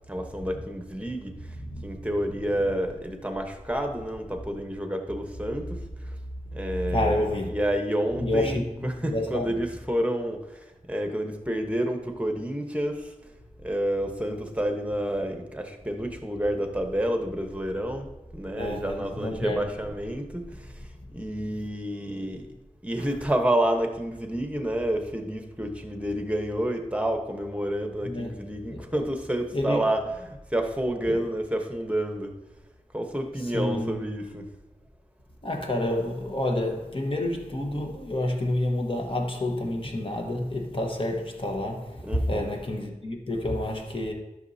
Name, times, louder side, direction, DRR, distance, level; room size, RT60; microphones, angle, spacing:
voice 1, 0.0-1.6 1.8-5.9 6.5-7.2 7.5-13.1 13.6-18.1 18.3-22.5 22.8-32.4 32.9-34.5 42.0-42.6, right 1 dB, 10° right, 1.1 m, -29 dB
voice 2, 1.6-2.0 6.9-7.5 8.2-9.5 18.6-19.7 28.0-28.3 28.7-28.9 29.5-29.9 31.1-31.3 33.5-34.0 35.4-44.1, left 1 dB, 40° left, 1.3 m, -29 dB
11.5 x 6.2 x 2.8 m
wide cardioid pair, 70°, 13 cm